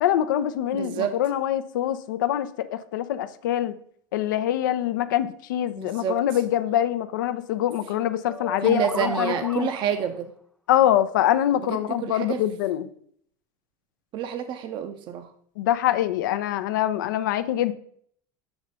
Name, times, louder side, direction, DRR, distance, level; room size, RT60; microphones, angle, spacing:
voice 1, 0.0-3.7 4.1-9.7 10.7-12.9 15.6-17.7, left 11 dB, 85° left, 13 dB, 0.5 m, -24 dB
voice 2, 0.7-1.2 5.8-6.2 8.6-10.3 11.7-12.4 14.1-15.3, right 8 dB, 50° right, 9 dB, 0.6 m, -28 dB
sound 1, 8.3-10.1, right 1 dB, ahead, 0.5 m, -34 dB
7.1 x 3.1 x 5.3 m, 0.63 s
hypercardioid pair, 90°, 10 cm